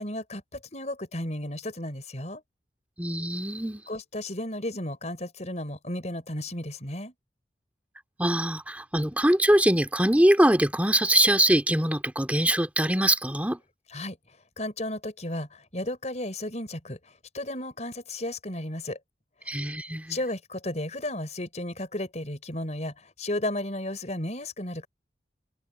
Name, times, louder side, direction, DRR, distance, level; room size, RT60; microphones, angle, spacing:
voice 1, 0.0-2.4 3.9-7.1 13.9-19.0 19.5-19.6 20.1-24.9, left 1 dB, 40° left, 5.7 m, -34 dB
voice 2, 3.0-3.8 8.2-13.6 19.5-20.2, right 1 dB, 10° right, 2.2 m, -23 dB
head